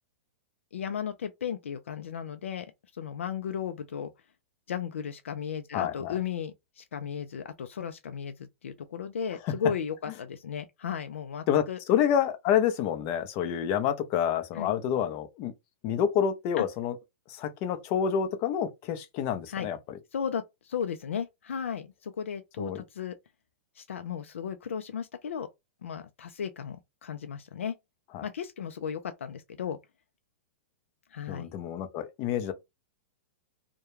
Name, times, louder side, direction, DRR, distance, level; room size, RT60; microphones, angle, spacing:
voice 1, 0.7-2.7 2.9-4.1 4.7-11.8 14.5-14.7 16.6-16.7 19.5-19.7 20.1-23.2 23.8-25.5 25.8-27.7 28.2-29.8 31.1-31.5, left 7 dB, 90° left, 0.4 m, -35 dB
voice 2, 5.7-6.1 9.5-9.6 11.5-15.5 15.8-16.9 17.3-19.8 22.6-22.8 28.1-28.3 31.3-32.5, left 9 dB, 40° left, 0.6 m, -28 dB
2.3 x 2.2 x 3.0 m
hypercardioid pair, 130°, 7 cm